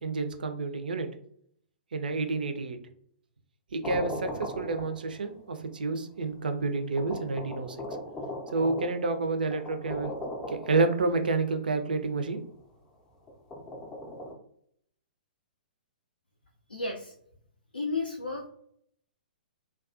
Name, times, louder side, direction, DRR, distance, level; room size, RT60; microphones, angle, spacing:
voice 1, 0.0-1.1 1.9-2.8 3.7-7.8 8.5-10.1 10.5-12.4, right 3 dB, 65° right, 7 dB, 0.4 m, -29 dB
sound 1, 3.8-5.4 6.2-6.3 6.9-11.5 13.3-14.3, left 1 dB, 15° left, 0.4 m, -39 dB
voice 2, 16.7-17.1 17.7-18.4, left 3 dB, 85° left, 1 dB, 0.3 m, -32 dB
2.3 x 2.2 x 2.4 m, 0.67 s
figure-of-eight pair, 115°, 5 cm